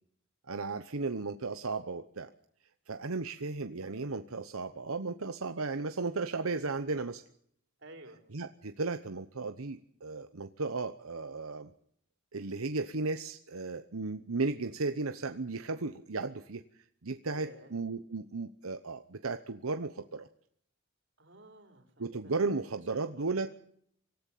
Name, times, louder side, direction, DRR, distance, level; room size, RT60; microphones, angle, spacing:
voice 1, 0.5-2.3 2.9-7.2 8.3-11.7 12.3-16.6 17.0-20.3 22.0-23.5, right 3 dB, 85° right, 9 dB, 1.0 m, -35 dB
voice 2, 7.8-8.2 17.3-17.8 21.2-23.5, right 1 dB, 55° right, 5 dB, 3.9 m, -54 dB
25.0 x 14.0 x 8.5 m, 0.66 s
head